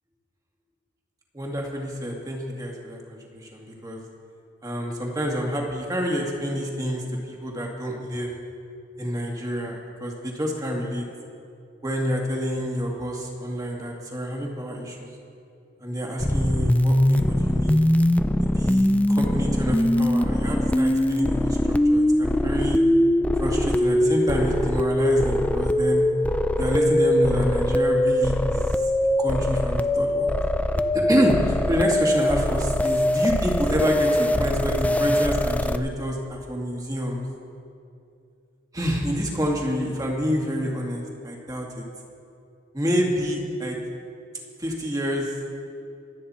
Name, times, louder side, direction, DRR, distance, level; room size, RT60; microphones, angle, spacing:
voice 1, 1.3-4.0 4.6-8.3 9.0-11.0 11.8-15.1 15.8-17.8 18.4-22.8 23.4-26.1 26.6-28.8 29.2-30.4 30.8-37.2 38.7-41.8 42.7-43.8 44.6-45.3, equal, 20° right, -1 dB, 2.0 m, -27 dB
sound 1, 16.2-35.7, left 1 dB, 5° left, 0.4 m, -22 dB
25.0 x 9.3 x 4.3 m, 2.5 s
head